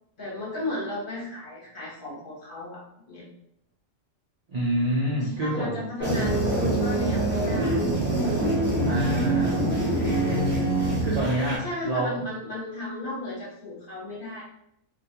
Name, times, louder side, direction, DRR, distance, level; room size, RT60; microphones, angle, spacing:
voice 1, 0.2-3.2 5.2-8.1 11.6-14.4, left 1 dB, 50° left, -5 dB, 0.8 m, -35 dB
voice 2, 4.5-5.8 8.8-10.7 11.0-12.2, right 1 dB, 70° right, -5 dB, 0.3 m, -28 dB
sound 1, 6.0-11.6, right 1 dB, 15° right, 0.5 m, -24 dB
2.2 x 2.2 x 2.8 m, 0.76 s
omnidirectional pair, 1.3 m